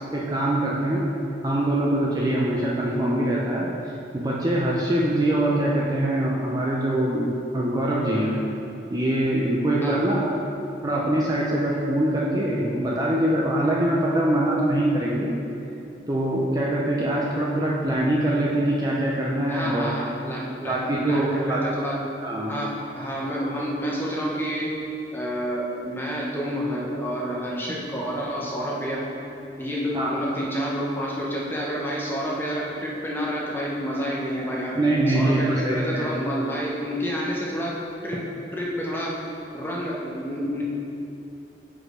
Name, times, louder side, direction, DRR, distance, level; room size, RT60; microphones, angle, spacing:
voice 1, 0.1-1.1 1.4-8.3 8.9-10.3 10.8-15.3 16.1-19.9 20.7-21.6 22.2-22.6 29.9-30.4 34.8-36.1, right 1 dB, 20° right, -4 dB, 0.5 m, -23 dB
voice 2, 19.5-22.0 22.5-24.7 25.1-29.1 29.6-34.8 35.1-37.8 38.0-38.2 38.5-39.1 39.5-40.6, equal, 10° left, -4 dB, 0.7 m, -29 dB
4.9 x 4.4 x 4.8 m, 2.8 s
head